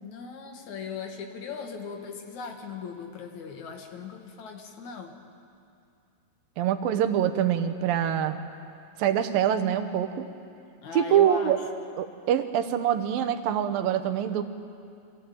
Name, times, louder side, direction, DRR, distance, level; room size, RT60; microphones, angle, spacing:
voice 1, 0.0-5.1 10.8-11.6, left 6 dB, 60° left, 4 dB, 2.7 m, -38 dB
voice 2, 6.6-8.4 9.0-10.3 10.9-11.6 12.0-14.4, right 10 dB, 90° right, 9 dB, 2.8 m, -25 dB
25.0 x 16.5 x 9.2 m, 2.5 s
omnidirectional pair, 4.0 m